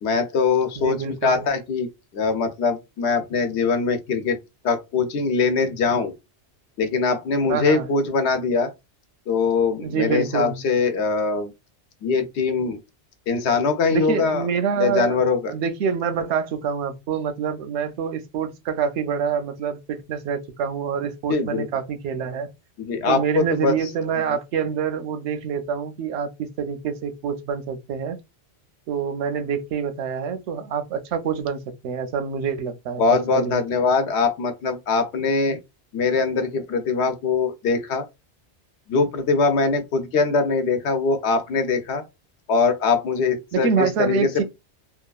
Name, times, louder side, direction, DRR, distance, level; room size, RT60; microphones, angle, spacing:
voice 1, 0.0-1.9 2.1-4.4 4.6-6.1 6.8-8.7 9.3-11.5 12.0-12.8 13.3-14.5 14.8-15.5 21.3-21.7 22.8-23.7 33.0-35.6 35.9-38.0 38.9-42.0 42.5-44.4, left 4 dB, 75° left, 0.9 m, -22 dB
voice 2, 0.8-1.5 7.5-7.9 9.8-10.6 13.9-15.2 15.5-22.5 23.1-28.2 28.9-33.6 43.5-44.4, right 6 dB, 80° right, 0.9 m, -26 dB
2.9 x 2.3 x 2.3 m
omnidirectional pair, 1.2 m